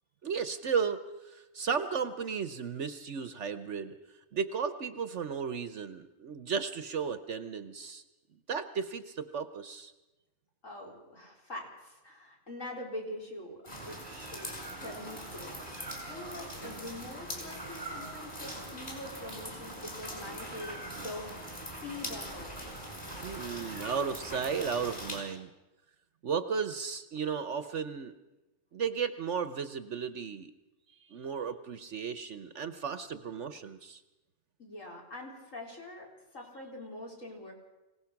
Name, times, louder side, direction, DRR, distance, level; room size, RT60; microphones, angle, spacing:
voice 1, 0.2-4.0 4.3-8.0 8.5-9.9 23.2-25.5 26.2-28.1 28.7-30.5 31.1-34.0, right 6 dB, 55° right, 12 dB, 1.1 m, -34 dB
voice 2, 10.6-22.8 34.6-36.1 36.3-37.5, left 1 dB, 60° left, -1 dB, 4.5 m, -44 dB
sound 1, 13.7-25.2, equal, 30° left, 5.6 m, -42 dB
24.5 x 17.5 x 5.9 m, 1.1 s
omnidirectional pair, 1.5 m